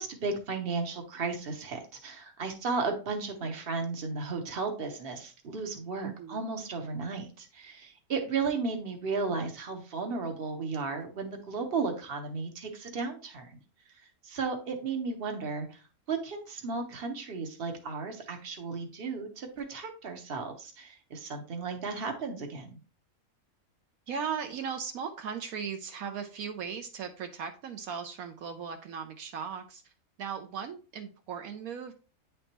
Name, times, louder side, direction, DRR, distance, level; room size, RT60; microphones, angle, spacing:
voice 1, 0.0-13.6 14.2-15.8 16.1-22.8, right 4 dB, 45° right, 3 dB, 1.2 m, -34 dB
voice 2, 6.0-6.4 24.1-29.9 30.2-31.9, right 7 dB, 75° right, 5 dB, 1.1 m, -37 dB
9.6 x 3.5 x 2.9 m, 0.36 s
omnidirectional pair, 1.5 m